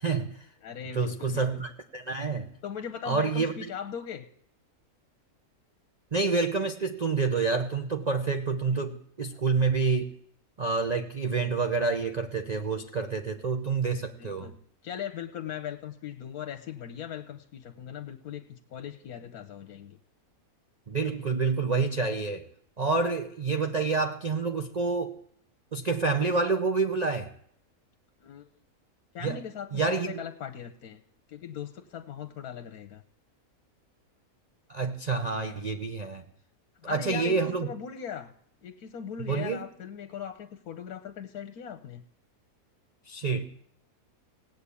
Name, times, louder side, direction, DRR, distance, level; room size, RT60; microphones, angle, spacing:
voice 1, 0.0-0.4 0.9-2.5 3.0-3.6 6.1-10.1 10.6-14.5 20.9-22.5 22.8-25.2 25.7-27.3 29.2-29.4 29.7-30.2 34.7-36.2 36.8-37.7 39.2-39.6 43.1-43.4, right 4 dB, 35° right, 6 dB, 0.7 m, -28 dB
voice 2, 0.6-1.4 2.6-4.3 14.2-14.6 14.8-20.0 28.2-28.5 29.1-31.0 31.3-33.0 36.8-38.3 38.6-42.0, left 8 dB, 85° left, 7 dB, 1.4 m, -39 dB
17.5 x 8.5 x 8.4 m, 0.67 s
omnidirectional pair, 1.6 m